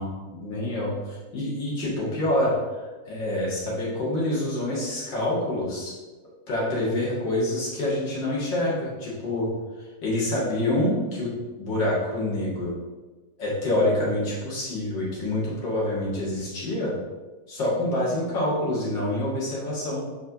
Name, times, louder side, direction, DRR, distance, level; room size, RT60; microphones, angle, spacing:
voice 1, 0.0-5.9 6.5-9.5 9.8-11.3 11.6-12.7 13.4-16.9 17.5-20.0, left 1 dB, 80° left, -6 dB, 2.7 m, -27 dB
4.7 x 4.4 x 5.8 m, 1.3 s
omnidirectional pair, 2.0 m